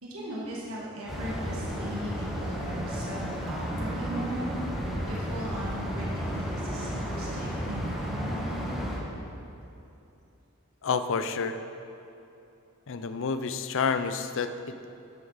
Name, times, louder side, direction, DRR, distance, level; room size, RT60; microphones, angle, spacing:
voice 1, 0.0-4.4 5.1-8.6, right 1 dB, 70° right, -5 dB, 1.7 m, -38 dB
sound 1, 1.1-9.0, equal, ahead, 2.0 m, -33 dB
voice 2, 10.8-11.6 12.9-14.9, left 5 dB, 65° left, 10 dB, 0.5 m, -29 dB
13.0 x 7.8 x 4.1 m, 2.8 s
head